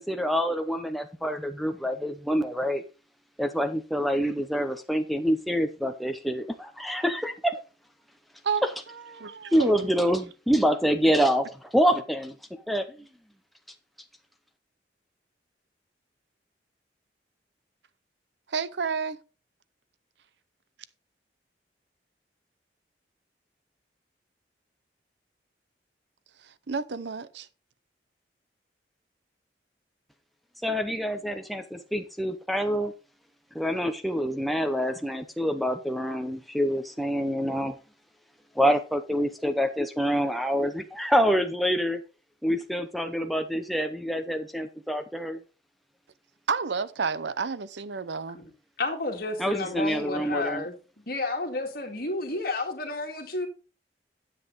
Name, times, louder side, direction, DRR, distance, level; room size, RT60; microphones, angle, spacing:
voice 1, 0.0-2.8 3.4-7.6 9.5-12.3 12.7-13.1 30.6-32.9 33.5-37.8 38.6-42.0 42.4-45.4 49.4-50.6, equal, ahead, 0.7 m, -26 dB
voice 2, 8.4-9.9 18.5-19.2 26.4-27.5 46.5-48.4, right 5 dB, 80° right, 0.7 m, -31 dB
voice 3, 48.8-50.8 51.1-53.5, left 2 dB, 55° left, 2.1 m, -31 dB
9.6 x 7.7 x 4.0 m
head